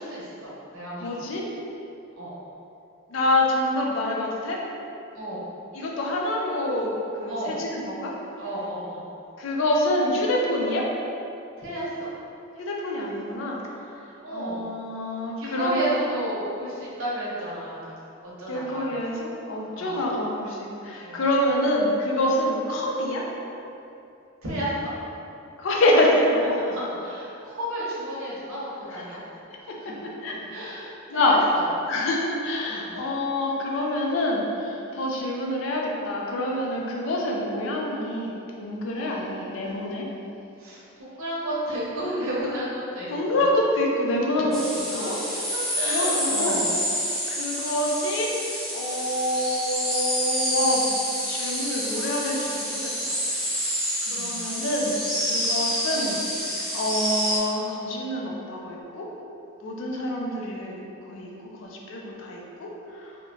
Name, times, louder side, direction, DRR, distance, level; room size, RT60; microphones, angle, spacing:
voice 1, 0.0-1.3 2.2-2.3 5.1-5.4 7.3-7.5 8.4-9.0 11.6-12.1 14.2-14.6 15.4-17.9 18.4-18.9 19.8-20.0 21.0-21.2 24.4-24.9 26.5-29.2 29.8-30.0 30.5-31.7 32.7-33.0 38.9-39.3 40.6-43.1 44.4-44.5 44.9-45.1 45.5-46.7 54.0-54.4, right 1 dB, 80° right, -7 dB, 0.7 m, -32 dB
voice 2, 1.0-1.5 3.1-4.6 5.7-8.1 9.4-10.8 12.6-13.6 14.3-16.1 18.5-23.2 25.6-26.6 28.9-29.0 30.2-30.4 31.1-31.4 31.9-38.3 38.6-40.0 43.1-45.2 45.9-46.7 47.3-48.3 48.7-50.9 51.2-53.2 54.1-59.1 59.6-60.8 61.1-61.3 61.6-63.1, left 1 dB, 65° left, -1 dB, 0.4 m, -26 dB
sound 1, 44.5-57.4, equal, ahead, 0.4 m, -28 dB
2.8 x 2.1 x 2.6 m, 2.7 s
head